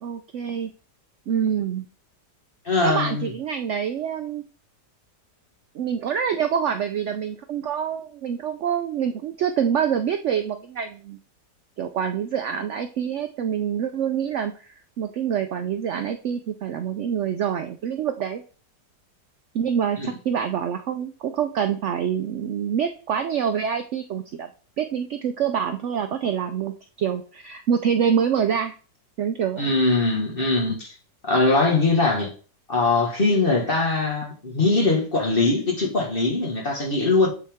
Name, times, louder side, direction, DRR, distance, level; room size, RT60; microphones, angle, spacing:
voice 1, 0.0-0.7 1.3-1.9 2.8-4.4 5.7-11.2 11.8-18.4 19.5-24.5 24.8-28.7 29.2-29.7, right 8 dB, 80° right, 0.6 m, -26 dB
voice 2, 2.6-3.3 20.0-20.1 29.6-30.9 31.2-32.3 32.7-37.3, left 3 dB, 35° left, 1.6 m, -21 dB
8.4 x 4.2 x 3.5 m
omnidirectional pair, 1.8 m